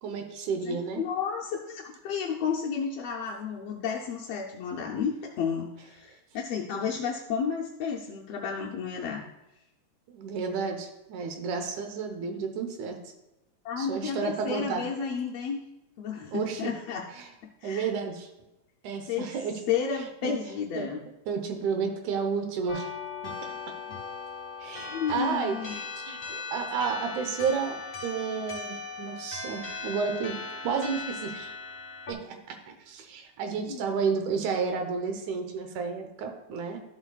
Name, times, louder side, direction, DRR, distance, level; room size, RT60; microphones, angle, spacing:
voice 1, 0.0-1.0 6.7-6.8 10.1-13.0 13.8-14.8 16.3-16.7 17.1-17.3 17.6-18.3 18.8-19.6 20.2-20.3 20.8-20.9 21.3-22.9 24.6-30.4 30.6-31.5 32.1-36.8, right 5 dB, 90° right, 5 dB, 2.4 m, -31 dB
voice 2, 0.6-9.2 13.6-15.6 16.0-17.0 17.4-17.9 19.1-19.3 19.7-21.0 23.9-24.0 24.9-25.8 33.7-33.9, left 6 dB, 75° left, 0 dB, 1.6 m, -32 dB
sound 1, 22.7-32.1, left 4 dB, 25° left, 2.0 m, -38 dB
13.0 x 7.3 x 2.3 m, 0.95 s
omnidirectional pair, 3.3 m